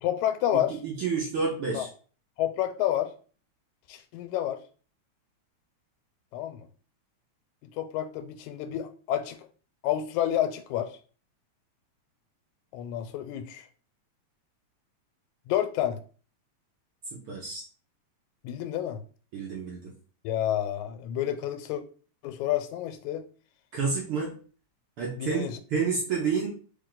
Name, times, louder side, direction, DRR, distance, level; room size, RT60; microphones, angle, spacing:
voice 1, 0.0-0.8 1.7-1.9 2.4-3.1 3.9-4.6 6.3-6.7 7.8-9.5 9.8-10.9 12.7-13.7 15.5-16.0 18.4-19.0 20.2-21.8 22.2-23.3 25.2-25.6, left 11 dB, 90° left, 2.0 m, -29 dB
voice 2, 0.7-1.9 17.1-17.6 19.3-19.9 23.7-24.3 25.0-26.5, right 5 dB, 65° right, 1.4 m, -29 dB
4.1 x 3.4 x 3.7 m
omnidirectional pair, 3.3 m